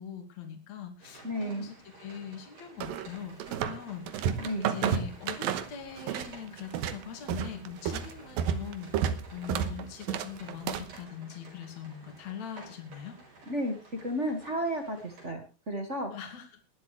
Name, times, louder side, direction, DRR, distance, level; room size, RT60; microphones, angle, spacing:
voice 1, 0.0-13.2 16.1-16.6, left 8 dB, 50° left, 4 dB, 3.4 m, -42 dB
sound 1, 1.0-15.3, right 2 dB, 55° right, 6.4 m, -53 dB
voice 2, 1.2-1.7 4.4-4.7 13.5-13.7 14.0-16.1, equal, 35° right, 4 dB, 1.2 m, -32 dB
sound 2, 2.8-3.8 4.1-6.3 6.6-11.0, right 8 dB, 75° right, 2.7 m, -31 dB
20.0 x 11.5 x 3.4 m, 0.31 s
omnidirectional pair, 4.5 m